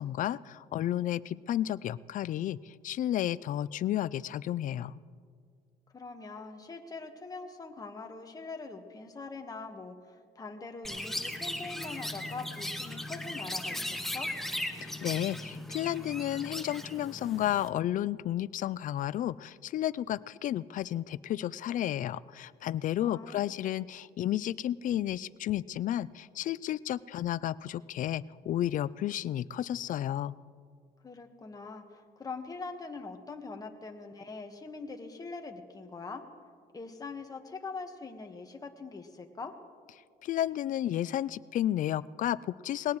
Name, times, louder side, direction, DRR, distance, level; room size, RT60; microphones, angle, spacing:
voice 1, 0.0-4.9 14.7-30.3 40.2-43.0, left 12 dB, 50° left, 19 dB, 0.4 m, -32 dB
voice 2, 5.9-14.3 23.0-23.6 31.0-36.2 36.7-39.5, left 4 dB, 20° left, 4 dB, 1.4 m, -43 dB
Chirp tweet, 10.8-17.7, left 1 dB, ahead, 0.9 m, -37 dB
20.5 x 18.0 x 3.1 m, 2.1 s
cardioid pair, 110°, 17 cm